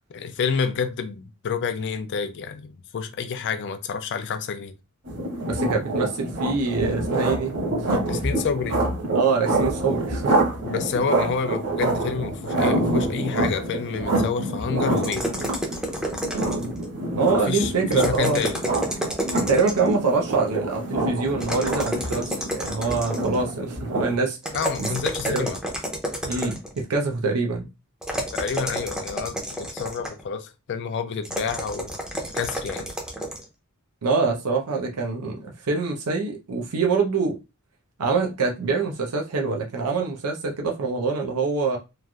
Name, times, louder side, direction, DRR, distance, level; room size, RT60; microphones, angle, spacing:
voice 1, 0.1-4.7 8.1-8.8 10.6-15.3 17.4-18.6 24.5-25.6 28.3-31.9 32.3-32.9, left 6 dB, 55° left, 0.4 m, -29 dB
sound 1, 5.1-24.2, right 2 dB, 55° right, 1.3 m, -27 dB
voice 2, 5.4-7.6 7.9-8.0 9.1-10.4 17.1-18.4 19.5-24.4 24.8-25.5 26.2-27.7 34.0-37.4 38.0-41.8, right 4 dB, 90° right, 0.6 m, -25 dB
sound 2, 15.0-16.8 17.9-19.9 21.4-23.4 24.4-26.8 28.0-30.2 31.2-33.4, right 1 dB, 5° right, 0.6 m, -30 dB
3.1 x 2.5 x 2.3 m
head